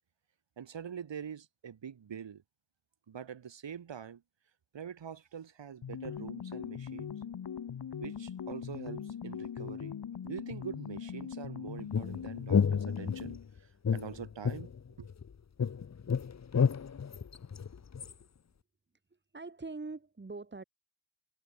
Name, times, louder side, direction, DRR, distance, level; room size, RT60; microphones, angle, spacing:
voice 1, 0.6-2.4 3.1-4.2 4.7-7.1 8.0-10.0 10.2-14.7 15.0-15.1, right 8 dB, 70° right, 7.5 m, -44 dB
sound 1, 5.8-13.5, left 8 dB, 55° left, 1.8 m, -41 dB
sound 2, 11.9-13.4 13.8-15.3 15.6-18.1, left 6 dB, 35° left, 1.1 m, -31 dB
voice 2, 19.1-20.6, right 3 dB, 25° right, 5.9 m, -43 dB
wide cardioid pair, 180°, 45 cm